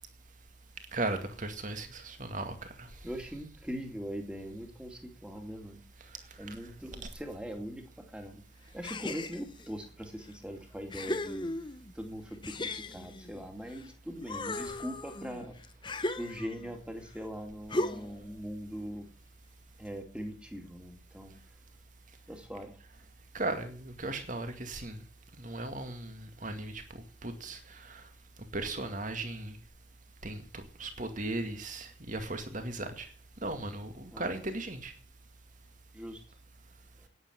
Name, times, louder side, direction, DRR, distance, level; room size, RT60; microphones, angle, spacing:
voice 1, 0.9-3.2 6.5-6.6 7.0-7.1 23.3-25.0 25.4-28.1 28.5-29.6 30.2-33.1 33.4-34.9, right 2 dB, 40° right, 2.2 m, -37 dB
voice 2, 3.0-5.8 6.4-11.5 11.9-15.5 16.2-19.1 19.8-21.4 22.3-22.8 34.1-34.3 35.9-36.2, equal, 5° right, 2.5 m, -41 dB
sound 1, 8.8-9.7 10.3-10.4 10.9-11.9 12.4-13.9 14.2-16.7 17.7-18.3, left 2 dB, 25° left, 0.8 m, -37 dB
11.0 x 10.0 x 9.4 m
head